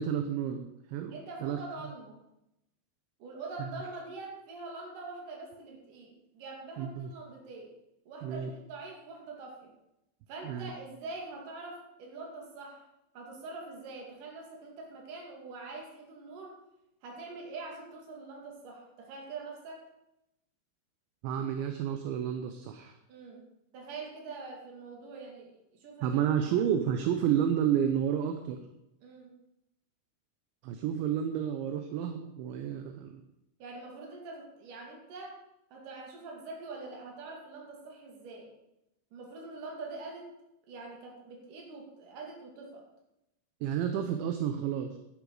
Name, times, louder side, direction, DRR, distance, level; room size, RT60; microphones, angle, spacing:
voice 1, 0.0-1.2 1.4-1.6 3.6-3.7 6.8-7.1 8.2-8.5 10.4-10.7 21.2-22.9 26.0-28.6 30.6-33.2 43.6-45.0, right 9 dB, 80° right, 6 dB, 3.0 m, -30 dB
voice 2, 1.1-2.2 3.2-7.7 8.1-9.7 10.3-12.9 13.1-16.6 17.0-19.9 23.1-23.4 23.7-26.2 29.0-29.3 33.6-35.4 35.7-38.5 39.1-40.3 40.7-42.8, right 3 dB, 50° right, -1 dB, 3.5 m, -44 dB
11.5 x 11.0 x 4.9 m, 0.88 s
omnidirectional pair, 5.7 m